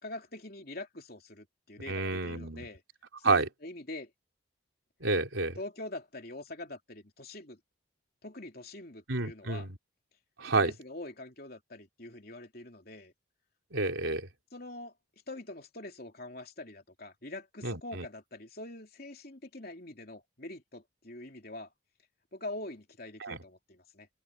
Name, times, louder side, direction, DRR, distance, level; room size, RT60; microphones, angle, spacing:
voice 1, 0.0-2.8 3.2-4.1 5.6-7.6 8.2-9.7 10.5-13.1 14.5-14.9 15.3-21.7 22.3-24.1, left 2 dB, 50° left, 3.4 m, -44 dB
voice 2, 1.9-2.6 3.2-3.4 5.0-5.6 9.1-9.8 10.4-10.7 13.7-14.3 17.6-18.1 23.2-23.4, right 3 dB, 80° right, 3.6 m, -29 dB
open air
head